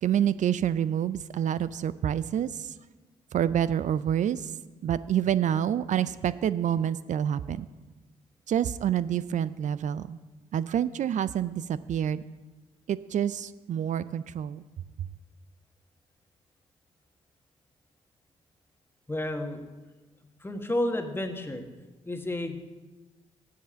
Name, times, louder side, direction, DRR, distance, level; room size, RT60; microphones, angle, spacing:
voice 1, 0.0-2.7 3.3-4.5 4.8-7.7 8.5-10.2 10.5-12.2 12.9-14.6 15.0-15.1, right 9 dB, 55° right, 16 dB, 0.4 m, -27 dB
voice 2, 19.1-19.6 20.4-21.6 22.1-22.6, left 1 dB, 15° left, 5 dB, 1.4 m, -31 dB
7.7 x 6.8 x 6.9 m, 1.2 s
hypercardioid pair, 45°, 15 cm